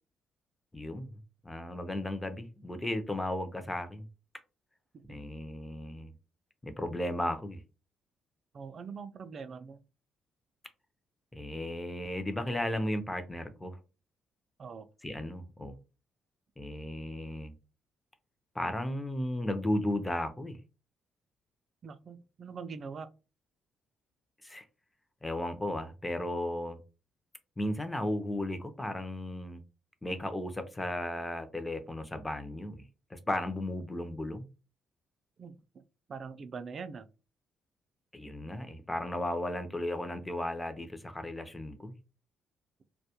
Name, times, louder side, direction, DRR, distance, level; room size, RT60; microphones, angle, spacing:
voice 1, 0.7-1.1 1.4-4.1 5.1-6.1 6.6-7.6 11.3-13.8 15.0-15.7 16.6-17.5 18.5-20.6 24.4-24.6 25.2-26.8 27.6-29.6 30.0-32.8 33.1-34.5 38.1-41.9, left 1 dB, 15° left, 0.5 m, -35 dB
voice 2, 8.5-9.8 14.6-14.9 21.8-23.1 35.4-35.5 36.1-37.1, right 5 dB, 50° right, 0.3 m, -43 dB
2.2 x 2.1 x 2.8 m
cardioid pair, 90°, 0 cm